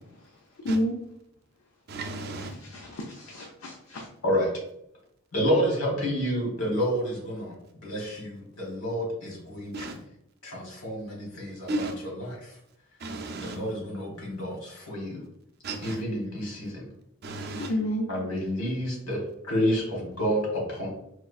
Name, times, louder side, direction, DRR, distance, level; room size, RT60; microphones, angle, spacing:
voice 1, 0.6-0.9 2.4-4.1 17.6-18.1, equal, 70° left, 0.5 m, -31 dB
voice 2, 1.9-2.5 9.7-10.0 11.7-12.0 13.0-13.6 15.6-16.0 17.2-17.7, right 2 dB, 45° right, 0.4 m, -34 dB
voice 3, 5.3-9.9 10.4-11.7 12.3-12.5 13.4-15.2 15.8-16.8 18.1-19.2 19.5-20.9, equal, 90° left, 1.3 m, -29 dB
4.2 x 2.3 x 2.4 m
head